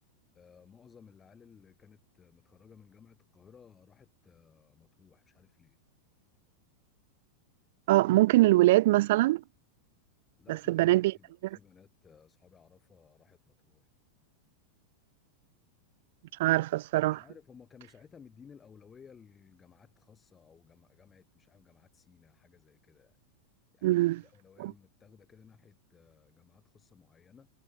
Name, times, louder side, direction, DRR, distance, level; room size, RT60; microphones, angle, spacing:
voice 1, 0.3-5.8 10.4-13.9 17.0-23.2 23.7-27.5, left 6 dB, 20° left, 7.5 m, -58 dB
voice 2, 7.9-9.4 10.7-11.1 11.4-11.6 16.4-17.2 23.8-24.2 24.6-24.7, right 17 dB, 65° right, 0.3 m, -23 dB
hypercardioid pair, 125°, 0 cm